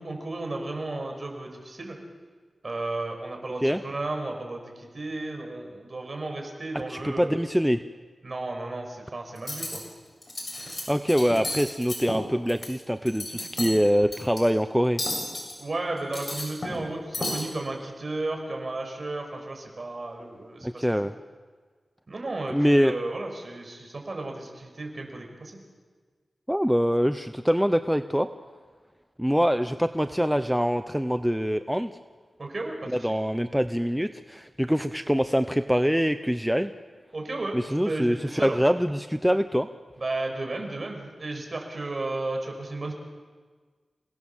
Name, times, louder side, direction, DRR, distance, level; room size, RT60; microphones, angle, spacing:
voice 1, 0.0-2.0 2.6-7.4 8.2-9.8 15.6-20.9 22.1-25.6 32.4-33.1 37.1-38.6 40.0-42.9, right 2 dB, 45° right, 3 dB, 6.0 m, -34 dB
voice 2, 6.9-7.8 10.9-15.0 20.6-21.1 22.5-22.9 26.5-28.3 29.2-31.9 33.0-36.7 37.5-39.7, equal, ahead, 9 dB, 0.8 m, -24 dB
Cutlery silverware, 9.4-9.8 10.2-10.8 11.1-12.7 13.0-13.7 14.1-14.4 15.0-15.5 16.0-16.9 17.1-17.4, left 1 dB, 40° left, 7.9 m, -32 dB
28.5 x 18.0 x 7.3 m, 1.5 s
wide cardioid pair, 70°, 0 cm